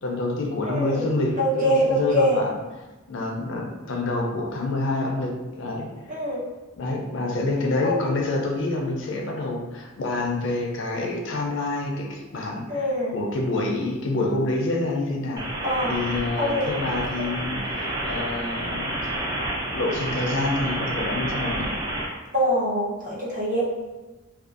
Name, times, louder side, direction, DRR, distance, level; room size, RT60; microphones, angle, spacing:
voice 1, 0.0-2.6 3.1-5.9 6.8-15.5 15.9-19.1 19.7-21.7, left 2 dB, 60° left, 0 dB, 0.4 m, -27 dB
voice 2, 0.6-1.1 1.4-2.4 6.1-6.4 7.8-8.0 12.7-13.1 15.6-16.0 16.4-16.6 17.2-17.3 22.3-23.6, equal, 40° right, -6 dB, 0.7 m, -24 dB
sound 1, 15.4-22.1, right 1 dB, 20° right, 0.3 m, -29 dB
2.5 x 2.4 x 2.4 m, 1.1 s
head